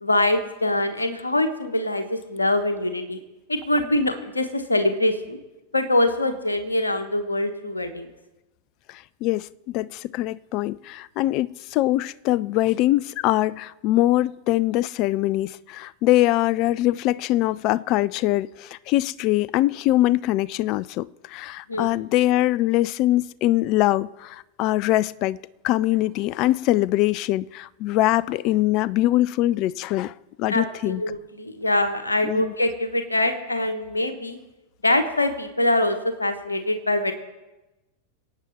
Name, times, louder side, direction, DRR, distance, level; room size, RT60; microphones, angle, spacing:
voice 1, 0.0-3.2 3.5-5.4 5.7-8.1 21.7-21.9 30.5-34.4 34.8-37.1, left 1 dB, 80° left, 1.3 m, -24 dB
voice 2, 8.9-25.4 25.6-31.0 32.2-32.5, left 16 dB, 40° left, 0.4 m, -23 dB
23.0 x 8.7 x 4.2 m
figure-of-eight pair, 90°, 0 cm